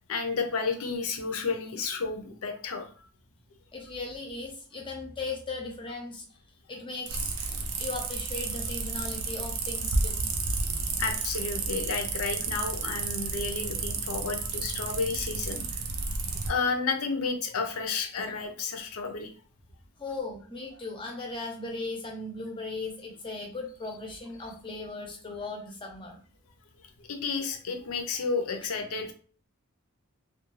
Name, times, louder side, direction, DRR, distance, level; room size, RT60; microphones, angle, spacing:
voice 1, 0.1-2.9 11.0-15.8 16.5-19.3 27.0-29.1, left 4 dB, 70° left, 5 dB, 0.5 m, -31 dB
voice 2, 3.7-6.2 6.7-7.4 7.8-10.2 20.0-26.2, left 3 dB, 20° left, 2 dB, 0.6 m, -37 dB
sound 1, 7.1-16.5, right 4 dB, 70° right, 0.5 m, -32 dB
2.4 x 2.2 x 3.0 m, 0.43 s
head